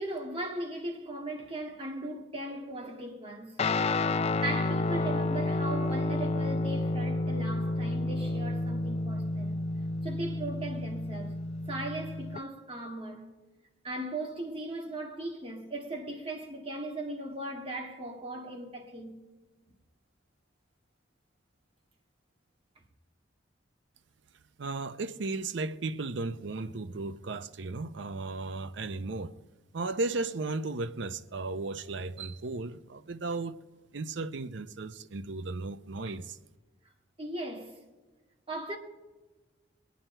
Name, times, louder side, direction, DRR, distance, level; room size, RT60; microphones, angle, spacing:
voice 1, 0.0-3.6 4.2-9.6 10.0-11.4 11.7-13.3 13.8-19.2 37.2-37.8 38.5-38.8, right 1 dB, 30° right, 2.0 m, -38 dB
Guitar, 3.6-12.4, left 2 dB, 35° left, 0.4 m, -30 dB
voice 2, 24.6-29.3 29.7-33.6 33.9-36.4, right 3 dB, 70° right, 0.6 m, -35 dB
22.0 x 9.4 x 4.4 m
head